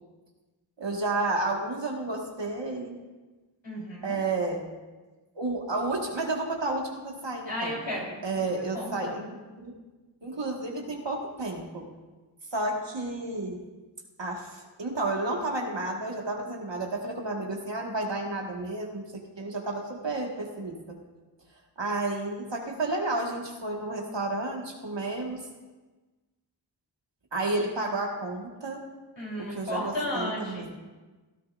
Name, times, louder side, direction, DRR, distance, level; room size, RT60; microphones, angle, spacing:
voice 1, 0.8-3.0 4.0-4.6 5.4-7.8 8.2-9.3 9.6-9.7 10.2-11.9 12.5-13.6 14.2-21.0 21.8-25.5 27.3-28.8 29.4-30.7, right 2 dB, 80° right, -1 dB, 1.9 m, -31 dB
voice 2, 3.6-4.2 7.5-8.2 8.7-9.2 29.2-30.6, left 1 dB, 85° left, -4 dB, 3.9 m, -33 dB
16.5 x 13.0 x 2.6 m, 1.2 s
wide cardioid pair, 50°, 43 cm